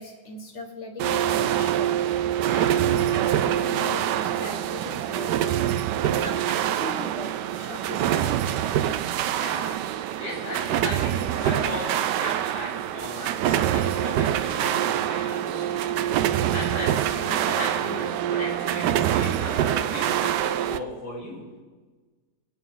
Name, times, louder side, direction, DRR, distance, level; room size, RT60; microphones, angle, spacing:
voice 1, 0.0-1.9 2.5-5.6 6.0-8.3, left 2 dB, 45° left, 3 dB, 1.9 m, -39 dB
sound 1, 1.0-20.8, right 11 dB, 85° right, 1.2 m, -25 dB
voice 2, 9.3-21.4, left 1 dB, 70° left, -4 dB, 3.6 m, -36 dB
26.5 x 8.9 x 3.8 m, 1.4 s
omnidirectional pair, 1.8 m